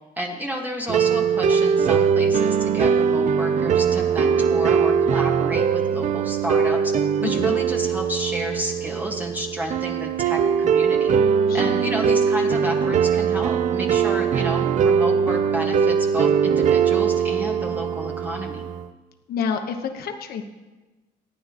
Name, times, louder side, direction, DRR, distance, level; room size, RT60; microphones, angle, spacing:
voice 1, 0.2-6.9 7.2-11.2 11.5-18.6, equal, 10° right, 0 dB, 1.6 m, -31 dB
sound 1, 0.9-18.9, right 7 dB, 45° right, 0.5 m, -21 dB
voice 2, 7.2-7.6 11.5-11.8 19.3-20.5, left 6 dB, 65° left, 6 dB, 1.1 m, -29 dB
24.5 x 9.4 x 3.0 m, 1.2 s
cardioid pair, 110°, 17 cm